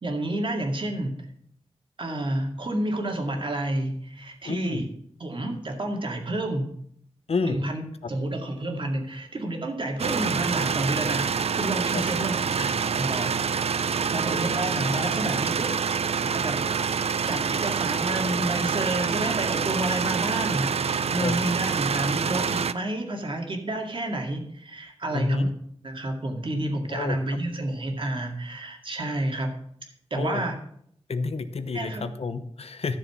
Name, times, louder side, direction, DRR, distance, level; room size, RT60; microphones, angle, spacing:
voice 1, 0.0-1.3 2.0-4.9 5.2-6.7 7.4-7.8 8.1-15.8 16.2-16.6 17.3-25.5 25.8-29.5 30.1-30.6 31.7-32.1, right 1 dB, 50° right, 2 dB, 2.2 m, -30 dB
voice 2, 4.4-4.8 7.3-7.6 11.9-12.0 21.2-21.4 25.1-25.5 26.9-27.2 30.2-30.4 31.1-33.0, left 4 dB, 70° left, 11 dB, 0.9 m, -29 dB
sound 1, 10.0-22.7, right 6 dB, 70° right, 0.5 m, -26 dB
13.0 x 7.0 x 6.0 m, 0.66 s
wide cardioid pair, 105°, 11 cm